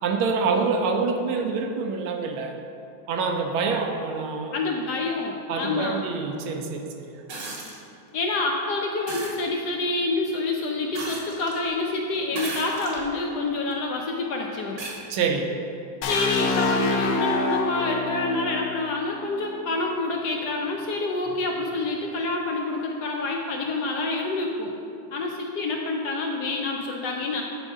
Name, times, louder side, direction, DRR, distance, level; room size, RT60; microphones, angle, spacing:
voice 1, 0.0-2.6 3.1-4.6 5.5-6.8 7.1-7.2 15.1-15.5, right 4 dB, 85° right, 4 dB, 1.5 m, -26 dB
voice 2, 4.5-6.0 8.1-14.8 16.1-24.8 25.1-27.4, left 3 dB, 70° left, 0 dB, 1.0 m, -27 dB
sound 1, 7.3-7.8 9.1-9.4 10.9-11.6 12.3-13.1 13.7-13.8 14.8-15.0 16.4-16.5, right 2 dB, 50° right, 1.2 m, -35 dB
sound 2, 16.0-19.8, left 3 dB, 90° left, 0.7 m, -27 dB
8.9 x 5.1 x 3.6 m, 2.7 s
omnidirectional pair, 2.2 m